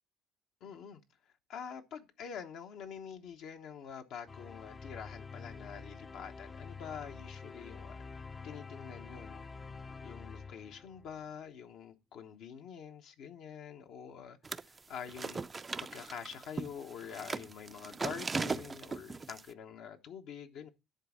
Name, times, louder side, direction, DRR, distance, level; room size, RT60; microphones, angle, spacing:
voice 1, 0.6-1.0 1.5-8.0 8.4-9.4 10.0-15.5 15.8-20.7, left 7 dB, 70° left, 1.0 m, -46 dB
sound 1, 4.3-11.3, left 4 dB, 30° left, 0.5 m, -47 dB
sound 2, 14.4-14.8 15.1-19.4, right 4 dB, 30° right, 0.4 m, -38 dB
10.5 x 4.0 x 6.3 m
supercardioid pair, 65°, 0 cm